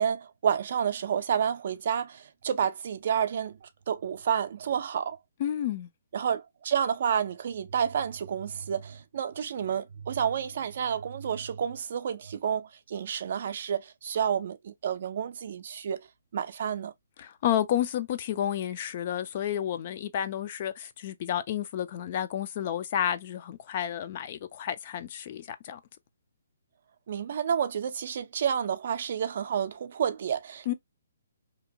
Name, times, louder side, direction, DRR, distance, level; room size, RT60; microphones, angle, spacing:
voice 1, 0.0-5.2 6.1-16.1 16.3-16.9 27.1-30.7, right 8 dB, 50° right, 0.4 m, -30 dB
voice 2, 5.4-5.9 17.2-25.8 30.7-30.8, left 10 dB, 35° left, 0.3 m, -31 dB
2.8 x 2.1 x 2.6 m
hypercardioid pair, 165°, 0 cm